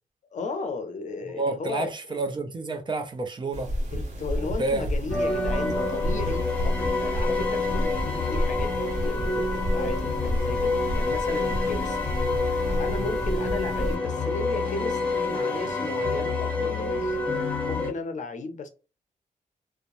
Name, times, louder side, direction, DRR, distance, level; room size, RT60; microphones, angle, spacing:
voice 1, 0.3-2.2 3.9-12.1 12.8-17.2 17.7-18.7, left 3 dB, 55° left, 0.6 m, -35 dB
voice 2, 1.3-3.7 4.6-4.9 13.0-13.1, right 3 dB, 35° right, 0.6 m, -29 dB
sound 1, 3.5-14.0, equal, 55° right, 1.1 m, -30 dB
sound 2, 5.1-17.9, left 3 dB, 10° left, 0.9 m, -27 dB
2.9 x 2.1 x 2.5 m
wide cardioid pair, 110°, 15 cm